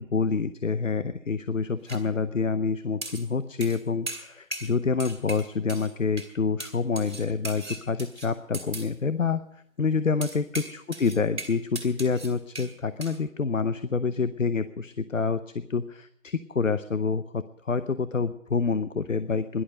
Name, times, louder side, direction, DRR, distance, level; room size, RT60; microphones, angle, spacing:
voice 1, 0.0-15.4 15.7-19.6, left 5 dB, 65° left, 13 dB, 0.8 m, -27 dB
sound 1, 1.9-2.0 3.0-3.3 3.6-4.7 5.0-5.9 6.2-6.3 6.6-8.9 10.2-12.7 13.0-13.2, right 2 dB, 55° right, 3.5 m, -38 dB
17.0 x 11.5 x 6.5 m, 0.74 s
figure-of-eight pair, 175°, 42 cm